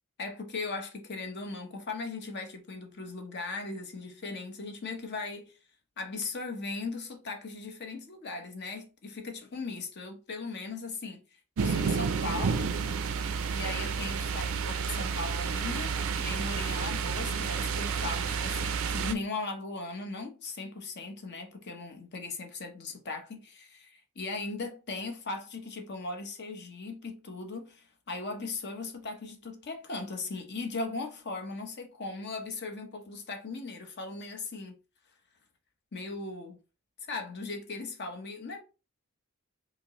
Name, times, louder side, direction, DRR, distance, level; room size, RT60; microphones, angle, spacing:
voice 1, 0.2-5.5 6.0-11.2 11.6-12.7 13.5-15.9 16.2-34.8 35.9-36.6 37.1-38.6, left 3 dB, 55° left, 0.8 m, -38 dB
sound 1, 11.6-19.1, right 5 dB, 75° right, 0.4 m, -30 dB
4.9 x 2.0 x 3.0 m
head